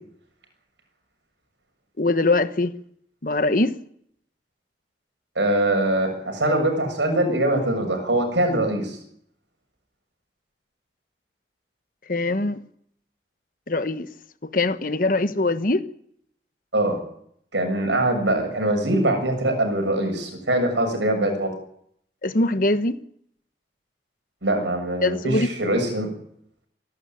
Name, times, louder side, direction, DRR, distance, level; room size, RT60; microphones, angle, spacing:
voice 1, 2.0-2.7 3.2-3.7 12.1-12.6 13.7-14.1 14.4-15.8 22.2-23.0 25.0-25.5, left 2 dB, 50° left, 1.2 m, -22 dB
voice 2, 5.4-9.0 16.7-17.0 17.5-21.5 24.4-26.1, right 1 dB, 85° right, 7.1 m, -23 dB
25.5 x 12.0 x 9.3 m
head